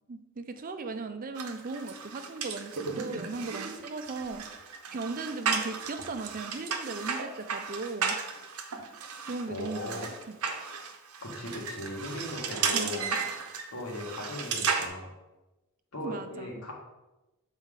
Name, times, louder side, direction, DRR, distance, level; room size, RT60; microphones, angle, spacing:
voice 1, 0.1-4.4 4.9-8.2 9.3-10.4 12.7-13.2 16.0-16.5, right 3 dB, 40° right, 8 dB, 0.5 m, -37 dB
sound 1, 1.4-14.9, right 5 dB, 90° right, 0.8 m, -34 dB
voice 2, 9.5-10.0 11.2-13.0 13.7-15.1 15.9-16.7, left 1 dB, 80° left, -2 dB, 1.7 m, -38 dB
7.4 x 4.4 x 3.7 m, 1.0 s
head